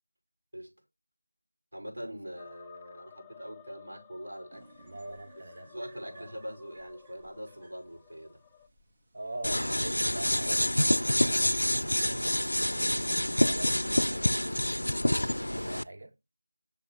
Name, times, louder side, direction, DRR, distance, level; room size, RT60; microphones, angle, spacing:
voice 1, 1.7-4.7 5.1-8.4 12.1-12.4, equal, 75° right, 5.6 m, -43 dB
sound 1, 2.4-8.7, left 8 dB, 5° left, 0.4 m, -55 dB
sound 2, 4.5-14.1, right 2 dB, 20° right, 1.8 m, -57 dB
voice 2, 4.8-5.7 6.0-6.3 9.1-12.0 12.7-12.8 13.4-14.5 15.1-16.1, right 2 dB, 45° right, 1.1 m, -44 dB
sound 3, 9.4-15.8, left 1 dB, 80° left, 0.4 m, -27 dB
6.8 x 6.3 x 3.3 m
figure-of-eight pair, 170°, 0 cm